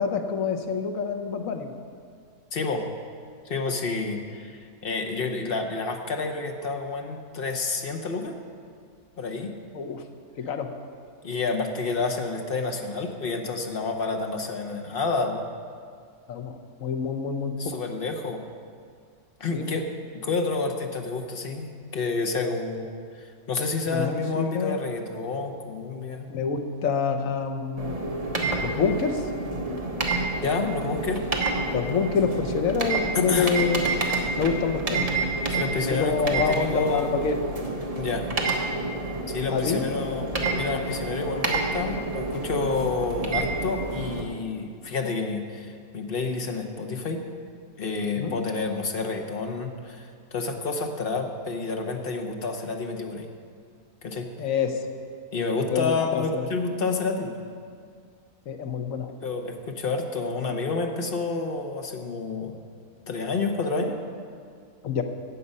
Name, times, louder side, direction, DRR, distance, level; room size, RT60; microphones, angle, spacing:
voice 1, 0.0-1.7 9.7-10.0 10.4-10.7 16.3-17.8 19.5-19.7 23.9-24.8 26.3-27.9 28.6-29.2 31.7-33.8 34.4-35.1 35.9-37.4 39.5-39.9 48.2-48.3 54.4-54.8 55.7-56.5 58.5-59.1 64.8-65.0, left 6 dB, 60° left, 6 dB, 1.2 m, -27 dB
voice 2, 2.5-2.8 3.4-8.3 9.2-9.5 11.2-15.5 17.6-18.4 19.4-19.8 20.2-22.9 23.2-26.3 30.4-31.2 33.1-33.6 35.5-37.3 37.9-38.3 39.3-47.2 47.8-53.3 54.0-54.2 55.3-57.4 59.2-62.5 63.1-64.0, left 3 dB, 40° left, 4 dB, 1.1 m, -29 dB
sound 1, 27.8-44.2, right 2 dB, 25° right, 1.1 m, -29 dB
14.0 x 8.4 x 5.4 m, 2.1 s
omnidirectional pair, 1.7 m